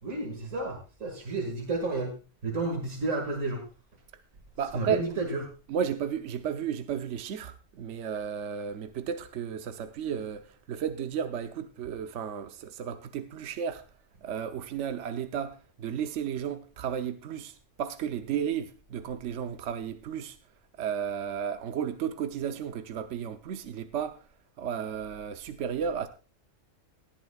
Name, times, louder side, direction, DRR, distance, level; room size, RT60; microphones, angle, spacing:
voice 1, 0.0-2.1 2.4-3.6 4.7-5.4, right 3 dB, 85° right, 2.4 m, -31 dB
voice 2, 4.6-5.0 5.7-13.9 14.2-20.4 20.8-24.2 24.6-26.1, right 8 dB, 70° right, 1.1 m, -33 dB
18.5 x 13.0 x 2.3 m
omnidirectional pair, 1.3 m